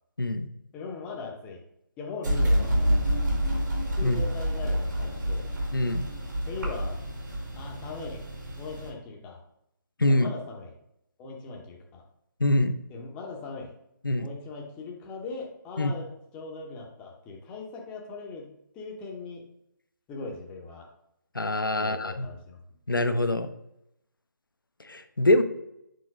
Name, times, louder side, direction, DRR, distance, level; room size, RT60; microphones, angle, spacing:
voice 1, 0.2-0.5 4.0-4.2 5.7-6.1 10.0-10.3 12.4-12.8 14.0-14.3 15.8-15.9 21.3-22.3 22.9-23.5 24.9-25.4, left 1 dB, 80° left, 9 dB, 0.7 m, -24 dB
voice 2, 0.7-1.6 2.0-3.0 4.0-5.5 6.5-7.0 7.6-8.2 8.6-9.4 10.1-10.7 11.2-12.0 12.9-13.7 14.2-16.1 16.3-18.5 18.7-19.4 20.1-20.9 21.7-22.6, left 4 dB, 10° left, 0 dB, 0.7 m, -39 dB
sound 1, 2.2-8.9, equal, 60° right, 2.0 m, -28 dB
6.7 x 3.8 x 3.6 m, 0.80 s
figure-of-eight pair, 150°, 11 cm